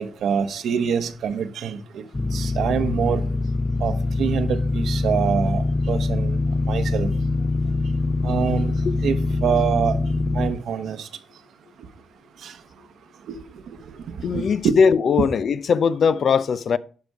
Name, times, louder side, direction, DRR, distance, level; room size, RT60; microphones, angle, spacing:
voice 1, 0.0-2.0 2.3-3.3 3.8-6.4 6.6-7.1 8.2-8.7 9.0-10.0 10.3-11.1 12.4-12.5 13.3-13.4 13.9-14.7, right 7 dB, 80° right, 1.1 m, -25 dB
sound 1, 2.1-10.5, left 3 dB, 25° left, 0.9 m, -23 dB
voice 2, 14.2-16.8, left 6 dB, 60° left, 0.5 m, -20 dB
11.0 x 5.3 x 4.7 m
cardioid pair, 75°, 0 cm